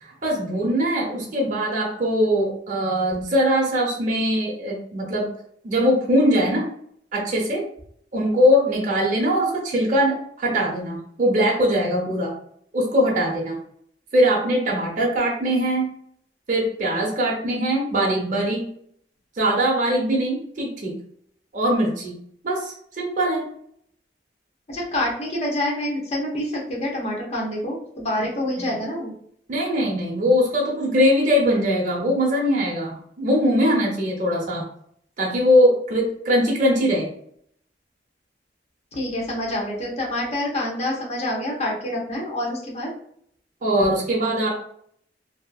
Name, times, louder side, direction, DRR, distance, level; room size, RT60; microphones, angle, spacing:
voice 1, 0.0-5.3 5.6-6.6 7.1-7.6 8.1-12.3 12.7-13.6 14.1-15.9 16.5-18.7 19.4-20.9 21.5-22.1 22.4-23.4 28.6-28.7 29.5-34.6 35.2-37.1 43.6-44.6, equal, 50° right, -2 dB, 0.7 m, -21 dB
voice 2, 24.7-29.1 38.9-42.9, left 1 dB, 40° left, -2 dB, 0.8 m, -27 dB
2.8 x 2.4 x 2.3 m, 0.66 s
head